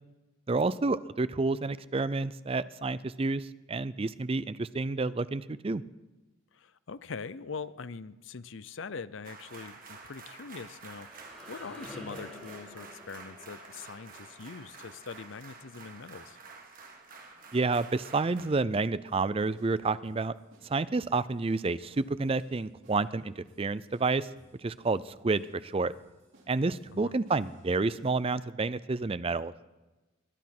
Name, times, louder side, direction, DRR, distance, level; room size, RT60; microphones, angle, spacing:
voice 1, 0.5-5.8 17.5-20.3 20.6-24.3 24.6-25.9 26.5-29.5, right 3 dB, 30° right, 16 dB, 0.4 m, -29 dB
voice 2, 6.5-16.4 26.9-27.1, left 5 dB, 70° left, 16 dB, 0.6 m, -43 dB
sound 1, 9.2-18.5, right 4 dB, 45° right, 2.0 m, -49 dB
sound 2, 10.5-16.3, left 1 dB, 5° left, 5.7 m, -50 dB
sound 3, 18.7-28.2, right 1 dB, 70° right, 4.5 m, -62 dB
21.5 x 11.0 x 6.0 m, 1.1 s
head